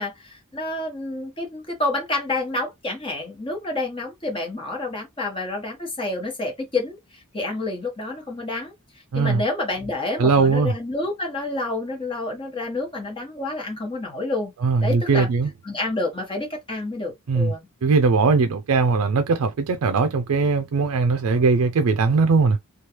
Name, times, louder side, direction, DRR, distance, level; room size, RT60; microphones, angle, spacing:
voice 1, 0.0-8.7 9.1-14.5 14.8-15.3 15.6-17.7 18.3-18.4, left 2 dB, 25° left, 1.2 m, -29 dB
voice 2, 9.1-9.4 10.2-10.7 14.6-15.5 17.3-17.5 17.8-22.6, right 4 dB, 75° right, 0.4 m, -20 dB
3.1 x 2.4 x 2.8 m
head